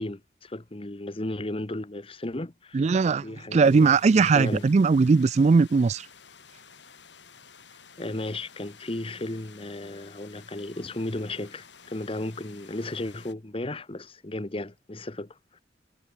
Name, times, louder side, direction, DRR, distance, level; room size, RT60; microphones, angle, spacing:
voice 1, 0.0-2.8 3.2-4.7 8.0-15.6, left 1 dB, 30° left, 1.1 m, -35 dB
voice 2, 2.7-3.3 3.5-6.1, right 4 dB, 40° right, 0.3 m, -19 dB
sound 1, 3.6-13.3, left 6 dB, 80° left, 7.0 m, -52 dB
head